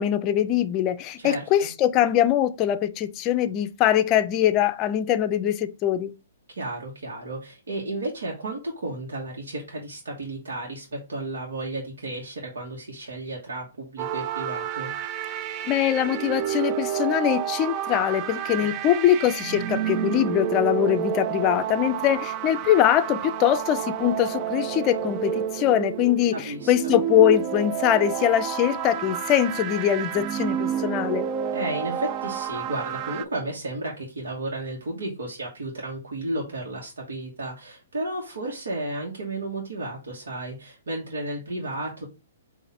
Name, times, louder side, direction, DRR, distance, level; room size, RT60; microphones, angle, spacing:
voice 1, 0.0-6.1 15.7-31.3, left 11 dB, 30° left, 0.5 m, -22 dB
voice 2, 1.2-1.7 6.5-14.9 18.6-18.7 26.3-26.9 31.5-42.1, right 2 dB, 80° right, 1.3 m, -33 dB
sound 1, 14.0-33.2, right 10 dB, 35° right, 0.3 m, -30 dB
4.0 x 2.6 x 4.2 m
hypercardioid pair, 130°, 0 cm